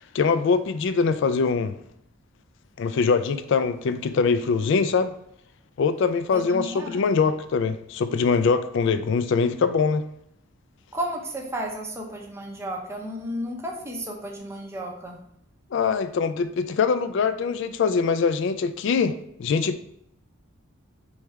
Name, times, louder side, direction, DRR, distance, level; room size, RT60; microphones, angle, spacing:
voice 1, 0.1-1.7 2.8-5.1 5.8-10.0 15.7-19.8, left 5 dB, 55° left, 11 dB, 0.3 m, -23 dB
voice 2, 6.3-7.0 10.9-15.2, equal, 10° right, 0 dB, 0.6 m, -33 dB
3.4 x 3.2 x 4.6 m, 0.73 s
head